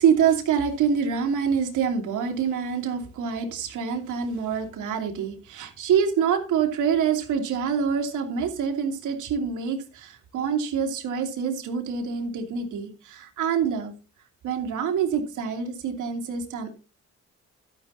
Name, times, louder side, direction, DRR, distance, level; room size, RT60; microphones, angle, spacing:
voice 1, 0.0-13.9 14.4-16.8, right 7 dB, 85° right, 3 dB, 2.8 m, -26 dB
12.5 x 10.0 x 2.8 m, 0.32 s
cardioid pair, 90°, 30 cm